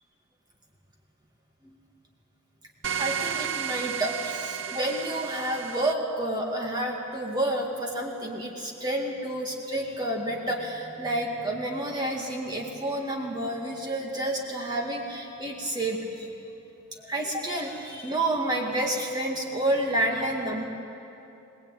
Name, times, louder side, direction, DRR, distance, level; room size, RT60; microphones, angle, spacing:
sound 1, 2.8-5.9, right 8 dB, 65° right, 0.6 m, -32 dB
voice 1, 3.0-16.0 17.0-20.6, right 1 dB, 20° right, -1 dB, 2.2 m, -29 dB
22.5 x 19.0 x 9.1 m, 2.8 s
head